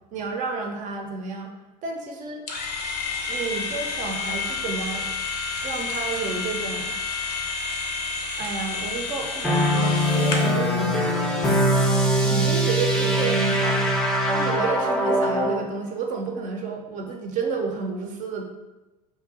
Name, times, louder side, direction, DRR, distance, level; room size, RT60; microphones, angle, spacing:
voice 1, 0.1-1.5 1.8-2.4 3.3-5.1 5.6-6.9 8.4-11.0 12.2-13.9 14.3-18.5, right 4 dB, 40° right, 2 dB, 0.6 m, -31 dB
sound 1, 2.5-10.6, left 4 dB, 85° left, 0.5 m, -30 dB
sound 2, 9.4-15.6, equal, 5° left, 0.5 m, -22 dB
2.7 x 2.1 x 4.0 m, 1.0 s
hypercardioid pair, 85°, 20 cm